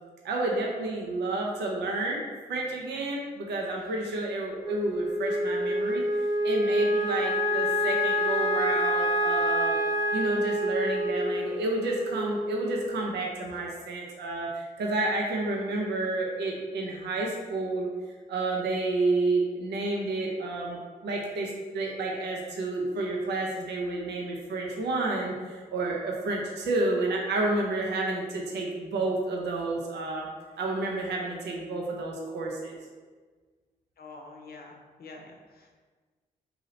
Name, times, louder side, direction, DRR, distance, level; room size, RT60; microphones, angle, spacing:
voice 1, 0.2-2.2 2.5-6.0 6.4-9.8 10.1-17.9 18.3-30.3 30.6-32.8, right 2 dB, 75° right, -1 dB, 0.5 m, -30 dB
Wind instrument woodwind instrument, 4.6-13.1, equal, 25° right, 0.6 m, -27 dB
voice 2, 34.0-35.7, left 3 dB, 60° left, 1 dB, 0.6 m, -47 dB
2.7 x 2.7 x 3.1 m, 1.4 s
supercardioid pair, 45°, 17 cm